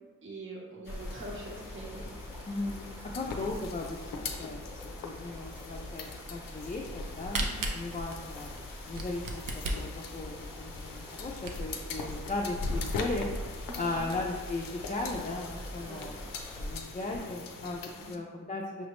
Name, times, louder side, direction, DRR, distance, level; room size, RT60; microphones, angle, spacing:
voice 1, 0.2-2.1 7.4-7.7 13.7-13.8 15.8-16.1 17.9-18.2, right 1 dB, 35° right, -3 dB, 0.8 m, -44 dB
sound 1, 0.9-18.2, left 3 dB, 85° left, 0.5 m, -41 dB
sound 2, 0.9-16.7, left 1 dB, 5° right, 0.9 m, -45 dB
voice 2, 2.5-13.3 13.8-16.2 16.5-18.9, left 2 dB, 25° left, -2 dB, 0.4 m, -37 dB
Camera, 6.9-11.9 12.4-12.5 12.7-12.8 13.3-13.4 13.8-14.1, right 2 dB, 75° right, 0.6 m, -37 dB
5.7 x 2.0 x 3.0 m, 1.4 s
cardioid pair, 60°, 33 cm